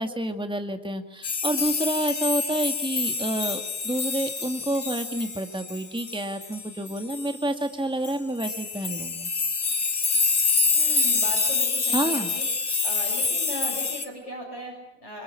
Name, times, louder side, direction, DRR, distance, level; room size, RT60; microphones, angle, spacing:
voice 1, 0.0-9.3 11.9-12.4, right 1 dB, 5° right, 6 dB, 2.0 m, -29 dB
sound 1, 1.2-7.4 8.0-8.1 8.4-14.0, left 4 dB, 85° left, 2.5 m, -26 dB
voice 2, 10.7-12.5 12.8-15.2, equal, 60° left, -4 dB, 7.3 m, -37 dB
27.0 x 25.0 x 8.5 m, 0.86 s
omnidirectional pair, 1.3 m